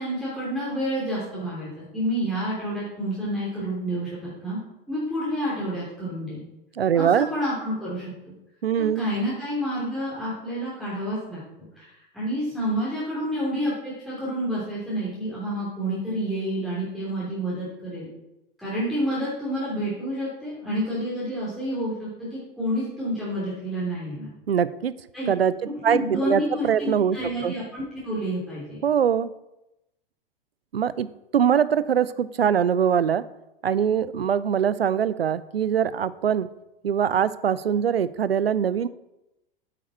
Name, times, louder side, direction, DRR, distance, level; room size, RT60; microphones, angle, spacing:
voice 1, 0.0-4.1 4.4-4.6 4.9-6.4 6.9-8.0 8.8-18.1 18.6-24.3 25.1-25.3 25.8-28.8, equal, ahead, -10 dB, 3.2 m, -29 dB
voice 2, 6.8-7.3 8.6-9.1 24.5-24.9 25.3-25.5 25.8-27.2 27.4-27.5 28.8-29.3 30.7-31.1 31.3-33.2 33.6-36.5 36.8-38.9, right 8 dB, 80° right, 17 dB, 0.5 m, -22 dB
8.7 x 7.7 x 4.3 m, 0.92 s
figure-of-eight pair, 90°, 29 cm